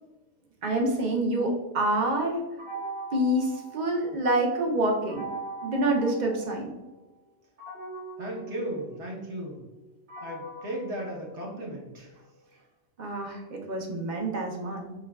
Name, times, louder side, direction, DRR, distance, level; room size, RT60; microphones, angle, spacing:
voice 1, 0.6-2.4 3.1-5.3 5.6-6.8 13.0-14.9, right 1 dB, 45° right, 1 dB, 0.6 m, -27 dB
sound 1, 2.6-4.4 5.1-6.9 7.6-11.9, right 3 dB, 90° right, 2.0 m, -41 dB
voice 2, 8.2-9.6 10.2-12.1, right 1 dB, 65° right, -2 dB, 1.3 m, -36 dB
6.7 x 2.2 x 2.3 m, 1.1 s
omnidirectional pair, 1.3 m